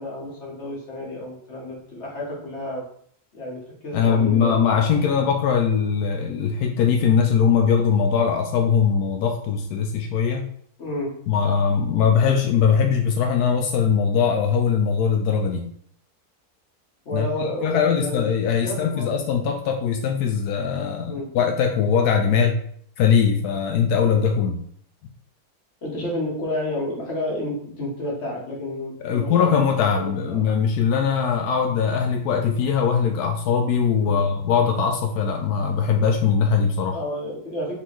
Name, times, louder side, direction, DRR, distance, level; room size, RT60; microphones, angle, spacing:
voice 1, 0.0-2.8 3.3-4.6 10.8-11.1 17.0-18.3 18.6-19.1 21.1-21.3 25.8-29.5 29.9-30.4 34.0-34.2 36.9-37.8, left 1 dB, 50° left, -3 dB, 1.6 m, -30 dB
voice 2, 3.9-10.5 11.3-15.6 17.1-22.6 23.0-24.6 29.0-37.0, left 6 dB, 85° left, 3 dB, 1.1 m, -21 dB
4.2 x 3.7 x 3.0 m, 0.63 s
omnidirectional pair, 1.6 m